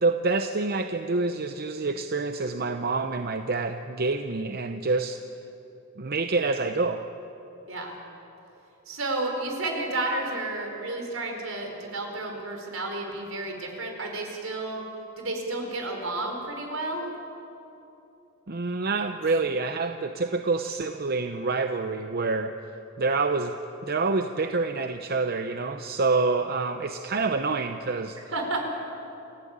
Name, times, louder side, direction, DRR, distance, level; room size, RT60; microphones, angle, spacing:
voice 1, 0.0-5.2 6.0-7.0 18.5-22.5 23.0-23.5 23.8-28.2, right 3 dB, 50° right, 7 dB, 0.8 m, -27 dB
voice 2, 8.9-14.8 15.2-17.0 19.3-19.4 28.2-28.6, right 2 dB, 75° right, 2 dB, 4.6 m, -31 dB
29.0 x 15.0 x 8.8 m, 2.9 s
head